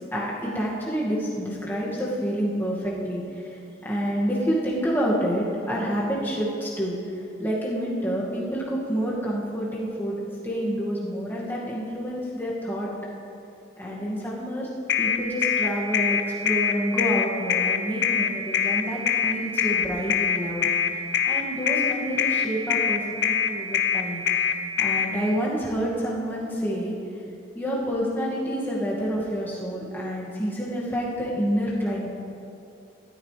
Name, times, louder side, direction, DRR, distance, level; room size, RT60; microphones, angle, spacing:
voice 1, 0.1-3.2 3.8-7.0 7.4-12.9 13.8-14.7 15.0-20.7 21.2-24.2 24.8-26.9 27.5-32.1, equal, 10° left, -6 dB, 2.1 m, -28 dB
sound 1, 14.9-25.1, left 8 dB, 65° left, 0.6 m, -23 dB
13.5 x 13.0 x 3.4 m, 2.6 s
head